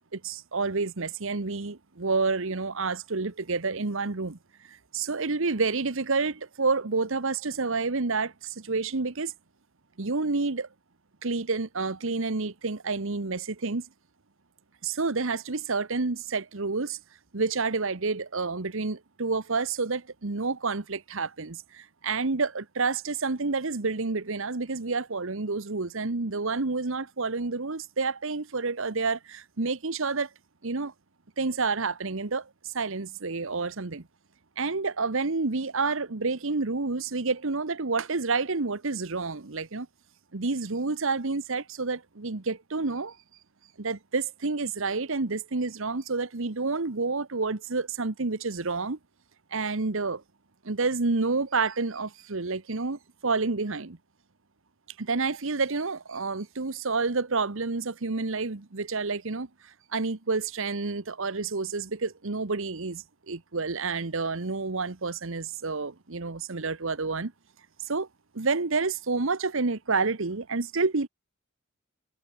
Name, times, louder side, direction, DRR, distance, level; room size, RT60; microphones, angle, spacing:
voice 1, 0.1-4.4 4.7-9.3 10.0-10.7 11.2-13.8 14.8-17.0 17.3-30.3 30.6-30.9 31.4-34.0 34.6-39.9 40.3-43.2 43.8-49.0 49.5-50.2 50.6-54.0 55.0-59.5 59.9-67.3 67.8-68.1 68.3-71.1, right 4 dB, 70° right, 1.2 m, -29 dB
head